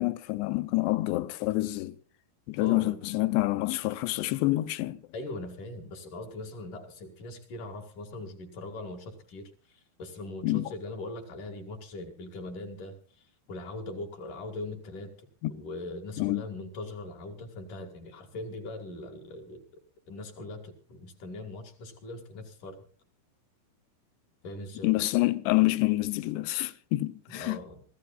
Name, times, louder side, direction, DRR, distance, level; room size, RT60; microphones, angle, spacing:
voice 1, 0.0-2.0 2.5-5.0 10.4-10.7 15.4-15.5 16.2-16.4 24.8-27.6, left 19 dB, 85° left, 2.9 m, -27 dB
voice 2, 2.6-3.0 5.1-12.9 13.5-15.1 15.5-19.6 20.1-22.8 24.4-25.0 27.3-27.8, left 2 dB, 55° left, 3.3 m, -40 dB
26.0 x 14.5 x 2.4 m
omnidirectional pair, 4.8 m